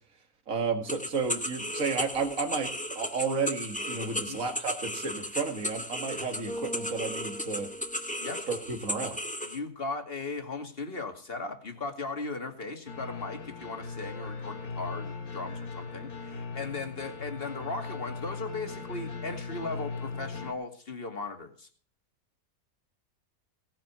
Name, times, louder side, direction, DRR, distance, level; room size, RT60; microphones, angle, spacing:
voice 1, 0.5-2.7 2.9-7.7 8.5-9.2, right 4 dB, 60° right, 6 dB, 2.5 m, -32 dB
sound 1, 0.9-9.6, equal, 5° left, 1.2 m, -35 dB
Bass guitar, 6.5-8.8, equal, 35° right, 3.1 m, -41 dB
voice 2, 9.4-21.7, left 3 dB, 40° left, 5 dB, 2.5 m, -37 dB
sound 2, 12.9-20.5, left 4 dB, 80° left, 2.4 m, -39 dB
18.0 x 9.2 x 6.0 m, 0.43 s
omnidirectional pair, 1.6 m